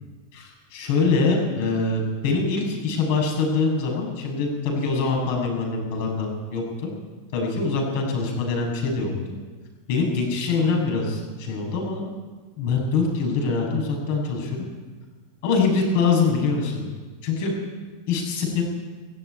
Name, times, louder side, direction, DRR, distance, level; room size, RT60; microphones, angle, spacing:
voice 1, 0.3-6.9 7.3-9.1 9.9-12.0 12.6-14.6 15.4-16.9 17.2-17.5 18.1-18.6, left 4 dB, 55° left, 1 dB, 7.5 m, -24 dB
16.5 x 16.0 x 9.7 m, 1.3 s
supercardioid pair, 160°, 0 cm